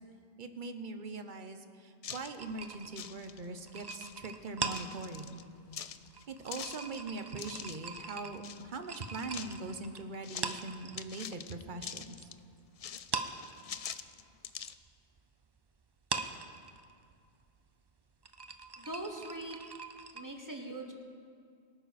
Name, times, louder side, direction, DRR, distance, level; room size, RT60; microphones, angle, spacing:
voice 1, 0.4-5.4 6.3-12.2, right 3 dB, 45° right, 8 dB, 1.0 m, -42 dB
sound 1, 2.0-2.4 2.8-3.5 3.8-4.2 4.7-5.4 5.7-7.8 8.4-8.7 8.9-9.6 10.2-10.6 11.0-12.4 12.8-14.7, left 8 dB, 70° left, 0.3 m, -44 dB
sound 2, 2.3-11.3 11.6-12.7 13.0-20.2, right 4 dB, 30° right, 0.4 m, -42 dB
voice 2, 18.8-19.6 20.1-20.9, right 1 dB, 15° right, 2 dB, 1.3 m, -41 dB
23.0 x 9.4 x 4.2 m, 2.3 s
omnidirectional pair, 1.2 m